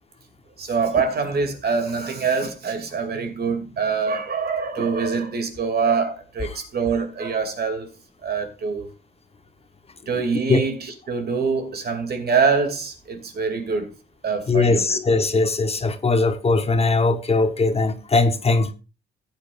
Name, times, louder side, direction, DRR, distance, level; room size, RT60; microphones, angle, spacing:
voice 1, 0.6-7.9 8.2-8.9 10.1-13.9 14.2-15.0, right 5 dB, 55° right, 2.6 m, -24 dB
voice 2, 14.5-18.7, left 3 dB, 30° left, 1.1 m, -20 dB
15.0 x 8.9 x 2.5 m
cardioid pair, 90°, 20 cm